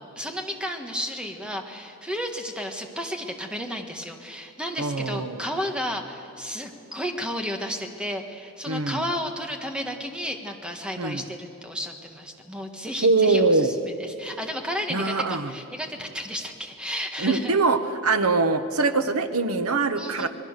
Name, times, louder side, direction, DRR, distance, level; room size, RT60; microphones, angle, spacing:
voice 1, 0.2-17.5 20.0-20.3, equal, 5° right, 4 dB, 1.6 m, -33 dB
voice 2, 4.8-5.4 8.7-9.0 11.0-11.2 13.0-13.7 14.9-15.5 17.2-20.3, right 3 dB, 80° right, 8 dB, 1.2 m, -23 dB
25.5 x 21.0 x 6.7 m, 2.6 s
head